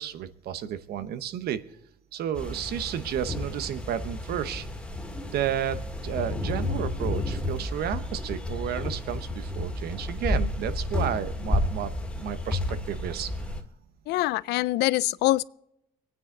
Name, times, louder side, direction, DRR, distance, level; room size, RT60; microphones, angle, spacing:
voice 1, 0.0-1.6 2.1-4.7 5.3-13.3, right 10 dB, 70° right, 1.0 m, -32 dB
sound 1, 2.3-13.6, left 1 dB, 5° left, 1.9 m, -31 dB
voice 2, 14.1-15.4, left 17 dB, 80° left, 0.4 m, -24 dB
23.5 x 9.7 x 3.9 m
cardioid pair, 110°, 17 cm